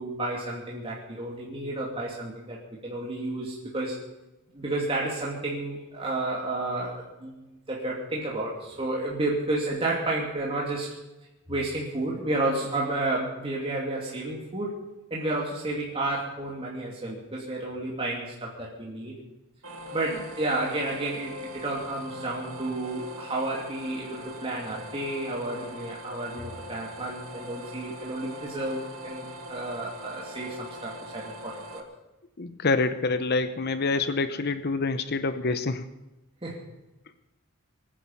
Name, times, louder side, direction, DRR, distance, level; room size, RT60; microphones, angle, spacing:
voice 1, 0.0-4.0 4.5-11.0 11.5-14.7 15.1-19.2 19.9-31.8 36.4-36.7, right 2 dB, 25° right, -4 dB, 2.7 m, -31 dB
sound 1, 19.6-31.8, equal, 70° right, 1.9 m, -42 dB
voice 2, 32.4-35.8, left 3 dB, 50° left, 10 dB, 0.8 m, -26 dB
23.0 x 10.5 x 5.6 m, 1.0 s
head